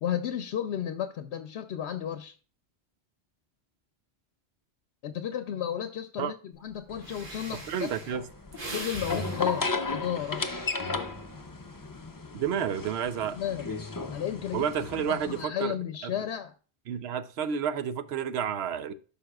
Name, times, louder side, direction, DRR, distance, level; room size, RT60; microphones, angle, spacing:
voice 1, 0.0-2.3 5.0-8.3 8.7-10.5 13.3-13.7 14.1-16.5, left 10 dB, 85° left, 9 dB, 0.9 m, -33 dB
Breathing, 6.7-6.8 7.0-11.3 11.7-12.1, right 2 dB, 55° right, 1.6 m, -42 dB
sound 1, 6.9-15.4, left 3 dB, 25° left, 0.5 m, -35 dB
voice 2, 7.7-8.2 12.3-13.4 14.5-15.7 16.0-16.1 16.9-18.9, right 8 dB, 75° right, 13 dB, 0.9 m, -30 dB
12.5 x 5.4 x 2.3 m, 0.37 s
omnidirectional pair, 1.1 m